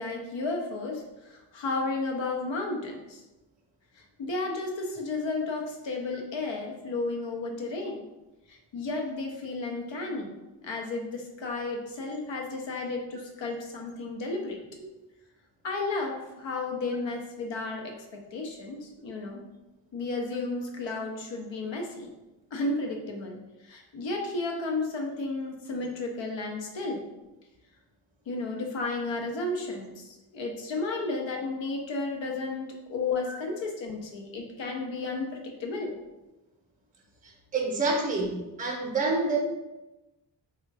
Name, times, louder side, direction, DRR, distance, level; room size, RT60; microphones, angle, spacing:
voice 1, 0.0-3.2 4.0-8.1 8.5-14.6 15.6-19.4 19.9-22.1 22.5-27.1 28.3-36.0, left 3 dB, 75° left, 1 dB, 0.7 m, -33 dB
voice 2, 37.5-39.4, right 3 dB, 20° right, 0 dB, 0.6 m, -27 dB
3.2 x 2.3 x 3.3 m, 1.0 s
cardioid pair, 75°, 46 cm